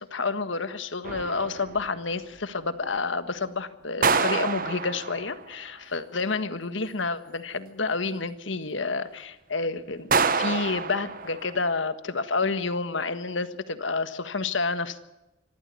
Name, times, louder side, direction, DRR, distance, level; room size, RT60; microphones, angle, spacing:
voice 1, 0.0-15.0, left 4 dB, 75° left, 11 dB, 1.5 m, -29 dB
sound 1, 1.0-2.0 4.0-5.6 10.1-11.7, right 5 dB, 45° right, 1.1 m, -27 dB
25.0 x 14.0 x 9.4 m, 1.0 s
head